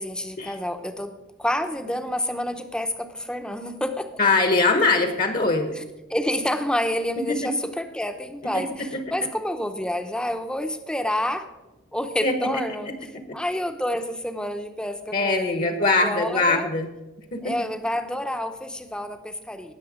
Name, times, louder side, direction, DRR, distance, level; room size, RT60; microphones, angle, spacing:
voice 1, 0.0-4.1 5.7-5.8 6.1-11.5 11.9-12.9 13.3-16.7 17.4-19.7, left 1 dB, 5° left, 8 dB, 0.7 m, -28 dB
voice 2, 4.2-5.8 7.3-7.5 8.5-8.6 8.9-9.0 12.2-12.5 12.9-13.0 15.1-16.9 17.3-17.5, left 3 dB, 40° left, 7 dB, 1.1 m, -22 dB
18.5 x 6.6 x 5.0 m, 1.1 s
head